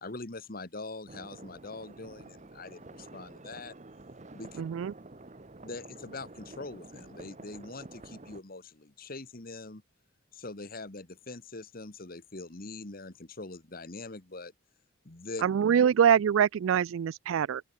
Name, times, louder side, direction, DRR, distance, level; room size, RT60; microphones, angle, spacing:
voice 1, 0.0-3.7 4.3-4.6 5.6-9.8 10.3-14.5 15.0-15.4, left 3 dB, 45° left, 1.5 m, -43 dB
sound 1, 1.1-8.4, right 2 dB, 35° right, 1.0 m, -49 dB
voice 2, 4.6-4.9 15.4-17.6, right 8 dB, 70° right, 0.3 m, -24 dB
open air
head